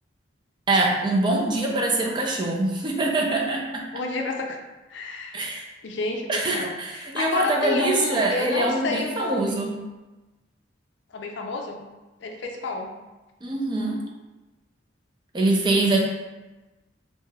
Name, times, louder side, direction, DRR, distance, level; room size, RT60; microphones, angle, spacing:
voice 1, 0.7-3.8 5.3-5.6 6.3-9.7 13.4-14.0 15.3-16.0, right 2 dB, 25° right, 0 dB, 0.4 m, -24 dB
voice 2, 3.9-4.6 4.9-5.4 5.8-9.6 11.1-11.8 12.2-12.9, left 3 dB, 70° left, 3 dB, 0.4 m, -30 dB
3.2 x 2.7 x 2.2 m, 1.1 s
head